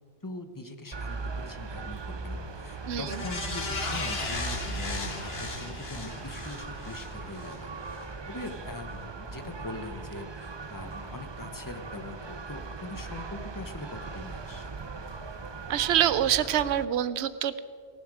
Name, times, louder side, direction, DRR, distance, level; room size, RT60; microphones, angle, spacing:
voice 1, 0.2-7.7 8.3-14.7, left 2 dB, 20° left, 8 dB, 0.9 m, -42 dB
sound 1, 0.9-16.9, right 4 dB, 30° right, 0.5 m, -39 dB
sound 2, 3.0-7.6 7.9-8.0, left 3 dB, 65° left, 1.9 m, -36 dB
voice 2, 15.7-17.6, right 10 dB, 85° right, 14 dB, 0.9 m, -25 dB
17.5 x 15.5 x 4.9 m, 2.1 s
omnidirectional pair, 1.1 m